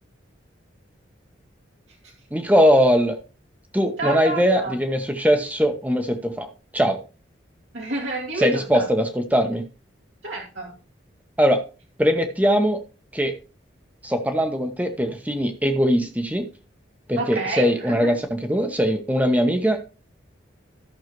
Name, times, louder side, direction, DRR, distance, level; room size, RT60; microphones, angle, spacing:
voice 1, 2.3-3.2 3.7-7.0 8.4-9.6 11.4-11.6 12.0-12.8 13.1-13.3 14.0-16.5 17.1-19.8, equal, 10° right, 6 dB, 1.0 m, -21 dB
voice 2, 4.0-4.7 7.7-8.8 10.2-10.7 17.2-18.1, right 2 dB, 70° right, -2 dB, 2.2 m, -29 dB
13.5 x 6.6 x 3.1 m, 0.32 s
head